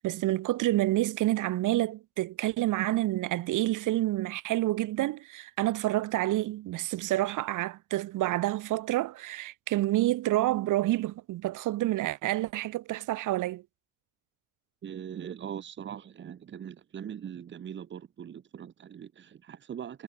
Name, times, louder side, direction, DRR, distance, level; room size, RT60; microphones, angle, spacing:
voice 1, 0.0-13.6, right 16 dB, 60° right, 4.6 m, -28 dB
voice 2, 14.8-20.0, right 9 dB, 30° right, 3.5 m, -41 dB
cardioid pair, 170°, 35 cm